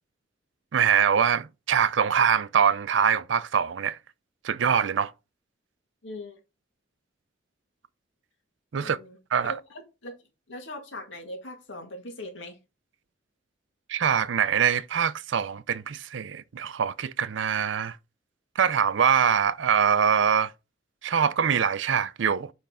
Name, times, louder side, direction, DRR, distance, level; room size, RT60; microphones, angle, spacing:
voice 1, 0.7-4.0 4.4-5.1 8.7-9.0 9.3-9.5 13.9-18.0 18.6-20.5 21.0-22.5, right 7 dB, 75° right, 0.5 m, -23 dB
voice 2, 6.0-6.4 8.8-9.2 9.4-10.1 10.5-12.6, left 1 dB, 80° left, 1.9 m, -40 dB
6.9 x 5.2 x 3.7 m
head